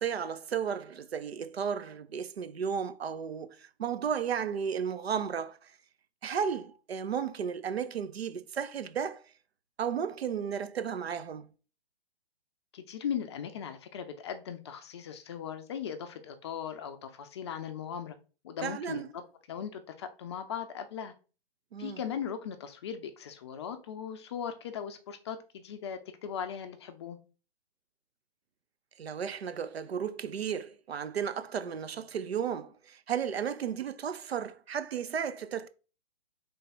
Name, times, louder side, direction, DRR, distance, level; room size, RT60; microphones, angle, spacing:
voice 1, 0.0-5.8 6.2-9.2 9.8-11.5 18.6-19.1 21.7-22.0 29.0-35.7, right 7 dB, 75° right, 0.6 m, -34 dB
voice 2, 12.7-18.2 18.4-19.2 19.5-21.1 21.8-27.2, left 8 dB, 25° left, 0.4 m, -38 dB
3.4 x 3.3 x 4.1 m
figure-of-eight pair, 125°, 31 cm